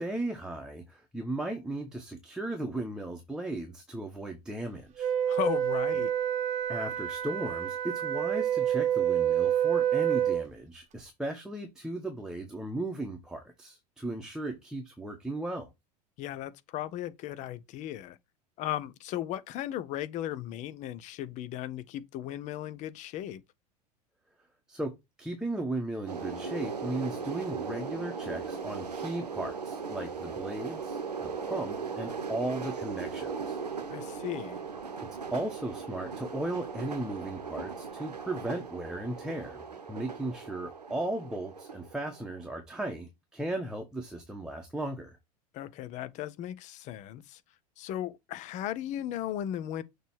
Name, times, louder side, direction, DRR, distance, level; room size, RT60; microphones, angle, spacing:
voice 1, 0.0-5.1 6.7-15.7 24.7-24.9 25.2-33.6 35.0-45.2, right 1 dB, 5° right, 1.1 m, -36 dB
Wind instrument woodwind instrument, 5.0-10.5, right 10 dB, 35° right, 0.9 m, -28 dB
voice 2, 5.3-6.1 16.2-18.2 18.6-23.4 33.9-34.6 45.5-47.4 47.8-49.8, left 12 dB, 35° left, 0.6 m, -36 dB
sound 1, 26.1-42.5, right 5 dB, 80° right, 0.9 m, -38 dB
6.7 x 3.1 x 4.5 m
figure-of-eight pair, 80°, 20 cm